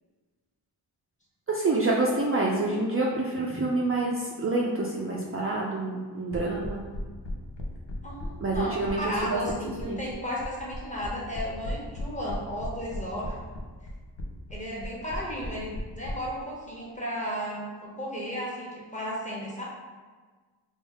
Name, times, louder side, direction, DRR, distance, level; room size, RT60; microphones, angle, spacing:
voice 1, 1.5-6.8 8.4-9.6 9.8-10.0, right 2 dB, 30° right, -3 dB, 0.4 m, -27 dB
sound 1, 6.3-16.1, left 1 dB, 85° left, 0.6 m, -36 dB
voice 2, 8.0-13.4 14.5-19.6, equal, 15° left, -5 dB, 1.1 m, -34 dB
3.4 x 2.3 x 3.4 m, 1.4 s
cardioid pair, 55°, 43 cm